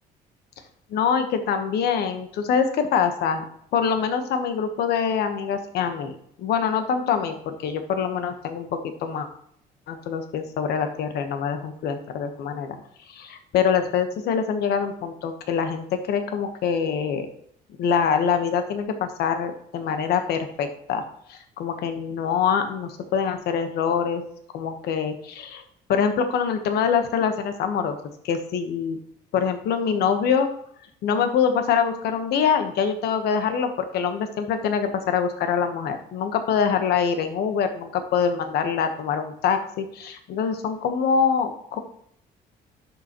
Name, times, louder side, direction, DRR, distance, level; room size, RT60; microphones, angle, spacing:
voice 1, 0.9-3.4 3.7-6.1 6.4-9.3 9.9-12.7 13.1-17.3 17.8-21.0 21.3-24.2 24.5-25.6 25.9-27.9 28.2-29.0 29.3-30.5 31.0-41.8, left 7 dB, 75° left, 7 dB, 1.1 m, -24 dB
11.0 x 6.9 x 3.0 m, 0.68 s
cardioid pair, 110°, 17 cm